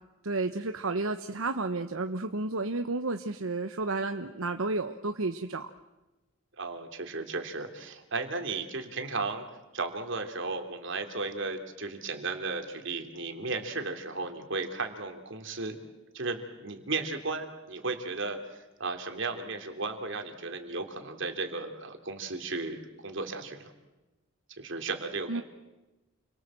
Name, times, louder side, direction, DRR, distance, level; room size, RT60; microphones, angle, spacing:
voice 1, 0.2-5.7 25.3-25.4, right 3 dB, 80° right, 7 dB, 1.0 m, -31 dB
voice 2, 6.6-9.4 9.7-15.8 16.1-18.4 18.8-23.7 24.6-25.4, right 3 dB, 60° right, 5 dB, 3.2 m, -35 dB
29.5 x 23.5 x 7.7 m, 1.0 s
head